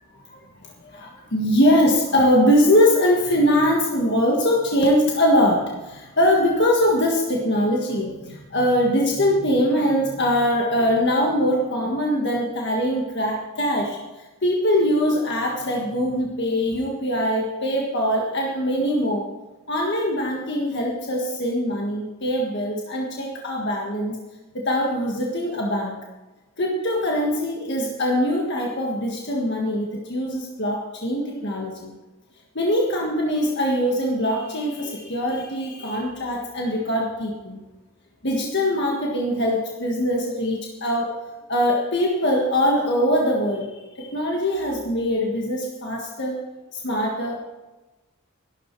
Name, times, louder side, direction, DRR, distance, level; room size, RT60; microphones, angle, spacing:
voice 1, 0.8-14.0 14.4-19.3 19.7-24.2 24.5-25.9 26.6-31.9 32.5-37.6 38.2-41.1 41.5-46.4 46.7-47.4, equal, 50° left, -1 dB, 1.6 m, -22 dB
13.5 x 12.0 x 4.6 m, 1.1 s
head